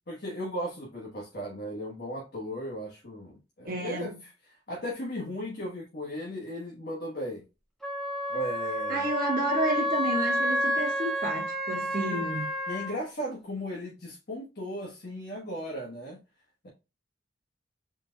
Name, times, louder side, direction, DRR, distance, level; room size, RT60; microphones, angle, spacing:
voice 1, 0.1-4.3 4.7-7.4 8.3-9.1 12.0-16.2, equal, 55° left, 1.2 m, -36 dB
voice 2, 3.6-4.1 8.9-12.5, right 2 dB, 50° right, 1.2 m, -31 dB
Wind instrument woodwind instrument, 7.8-12.9, equal, ahead, 0.9 m, -30 dB
4.4 x 3.9 x 2.2 m
head